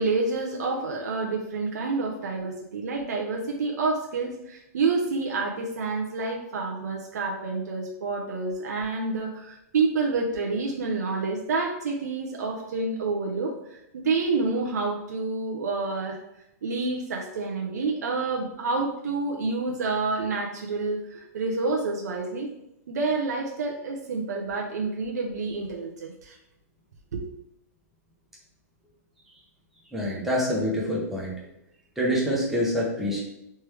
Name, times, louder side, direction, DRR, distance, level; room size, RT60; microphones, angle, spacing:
voice 1, 0.0-16.2 16.6-22.5 22.9-26.4 27.1-27.2, right 3 dB, 90° right, 0 dB, 0.7 m, -28 dB
voice 2, 29.9-31.3 32.0-33.2, equal, 5° right, -5 dB, 0.7 m, -26 dB
3.3 x 3.2 x 3.4 m, 0.81 s
hypercardioid pair, 170°, 9 cm